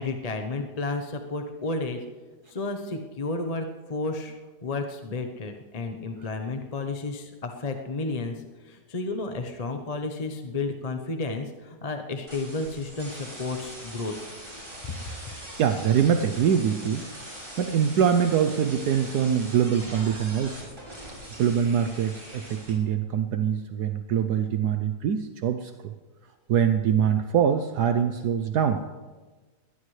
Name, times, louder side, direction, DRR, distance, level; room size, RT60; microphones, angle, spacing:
voice 1, 0.0-2.0 2.5-4.3 4.6-14.1, left 3 dB, 30° left, 5 dB, 0.8 m, -32 dB
sound 1, 12.3-22.7, right 1 dB, 30° right, 5.8 m, -42 dB
voice 2, 15.6-17.0 17.6-20.6 21.4-25.9 26.5-28.8, right 8 dB, 75° right, 8 dB, 1.3 m, -24 dB
21.5 x 17.5 x 3.3 m, 1.3 s
omnidirectional pair, 1.8 m